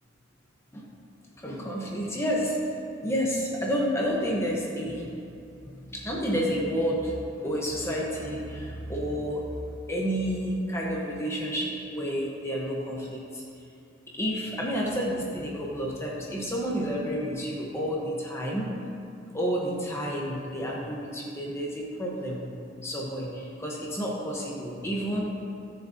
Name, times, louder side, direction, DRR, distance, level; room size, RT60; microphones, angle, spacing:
voice 1, 1.4-2.7 3.0-5.1 5.6-9.5 9.9-13.4 14.1-18.7 19.3-22.4 22.8-25.2, equal, 15° left, -3 dB, 1.2 m, -30 dB
17.5 x 6.7 x 2.9 m, 2.5 s
head